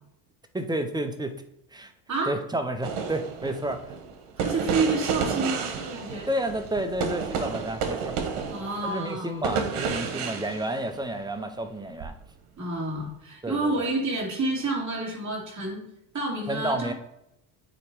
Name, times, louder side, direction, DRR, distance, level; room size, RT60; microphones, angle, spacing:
voice 1, 0.5-1.3 1.7-1.9 2.3-4.0 6.3-8.2 8.8-12.1 13.4-13.7 16.5-16.9, right 1 dB, 10° right, 7 dB, 0.5 m, -30 dB
sound 1, 2.8-11.3 12.0-12.2, right 6 dB, 85° right, 1.3 m, -31 dB
voice 2, 4.4-6.3 8.5-9.4 12.6-15.9 16.1-16.9, right 3 dB, 35° right, -2 dB, 2.5 m, -29 dB
8.7 x 2.9 x 4.6 m, 0.82 s
cardioid pair, 125°, 50 cm